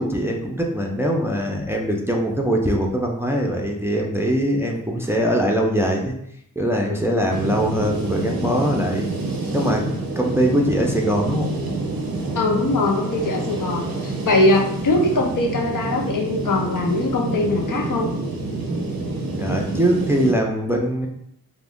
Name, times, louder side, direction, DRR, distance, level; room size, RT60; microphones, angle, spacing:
voice 1, 0.0-6.1 6.6-9.1 9.5-9.9 10.2-11.5 19.4-21.1, equal, 5° right, 0 dB, 0.4 m, -22 dB
sound 1, 7.3-20.3, right 2 dB, 85° right, 0.5 m, -27 dB
voice 2, 12.3-18.1, left 2 dB, 65° left, 1 dB, 0.6 m, -21 dB
2.4 x 2.2 x 3.5 m, 0.73 s
wide cardioid pair, 50°, 34 cm